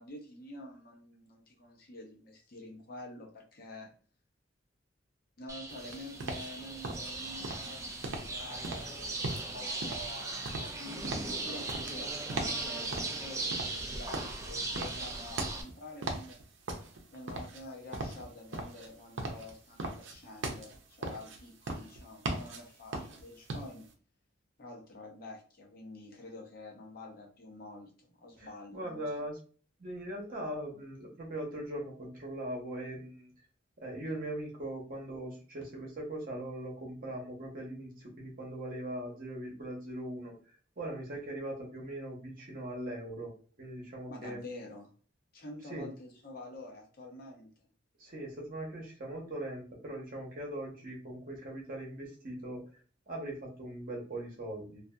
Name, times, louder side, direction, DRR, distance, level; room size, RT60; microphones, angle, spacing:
voice 1, 0.0-3.9 5.4-16.4 17.1-23.9 24.6-29.0 44.1-44.9 45.3-47.7, left 1 dB, 50° left, -1 dB, 0.8 m, -48 dB
sound 1, 5.5-15.6, right 2 dB, 15° right, 0.3 m, -38 dB
sound 2, 5.7-23.9, right 2 dB, 80° right, 0.6 m, -40 dB
voice 2, 28.4-29.4 29.8-33.3 33.8-40.3 40.8-43.3 43.6-44.4 45.7-45.9 48.0-52.6 53.1-54.8, right 1 dB, 50° right, -1 dB, 0.8 m, -40 dB
2.6 x 2.4 x 2.3 m, 0.40 s
head